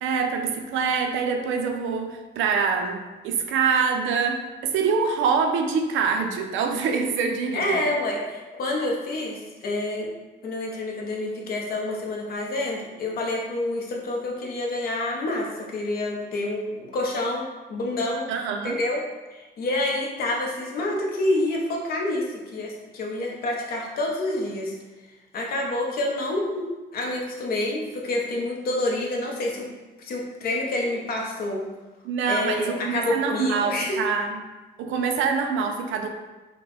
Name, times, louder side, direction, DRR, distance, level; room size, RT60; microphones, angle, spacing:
voice 1, 0.0-7.9 18.3-18.8 32.0-34.4 34.8-36.1, right 5 dB, 80° right, 5 dB, 0.6 m, -25 dB
voice 2, 7.5-10.1 10.4-18.3 18.6-19.0 19.3-24.7 25.3-29.7 30.0-31.6 32.3-34.0, left 2 dB, 50° left, -1 dB, 0.9 m, -28 dB
5.3 x 2.2 x 4.0 m, 1.2 s
cardioid pair, 175°, 20 cm